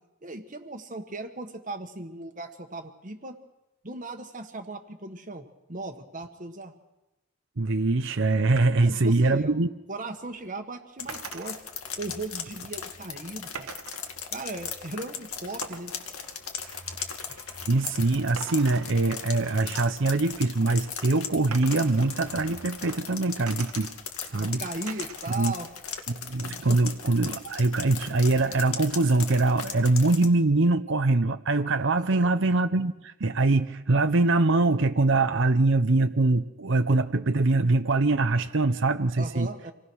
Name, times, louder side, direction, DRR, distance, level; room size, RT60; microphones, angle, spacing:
voice 1, 0.2-3.4 3.8-6.7 8.8-9.6 9.9-11.6 12.0-13.7 14.3-15.9 24.4-25.7 26.7-26.8 32.0-32.3 39.2-39.7, right 2 dB, 35° right, 4 dB, 1.4 m, -37 dB
voice 2, 7.6-9.7 17.7-23.9 24.2-24.6 25.4-25.5 26.1-39.5, right 2 dB, 55° right, 8 dB, 0.8 m, -23 dB
sound 1, 11.0-30.3, left 7 dB, 75° left, 2.2 m, -38 dB
sound 2, 11.1-11.5 13.5-14.1 15.6-18.1 18.4-19.3 19.8-20.1 21.5-23.0 23.5-24.2 24.9-25.4 25.8-26.5, right 5 dB, 80° right, 1.5 m, -43 dB
26.5 x 18.5 x 6.3 m, 0.96 s
head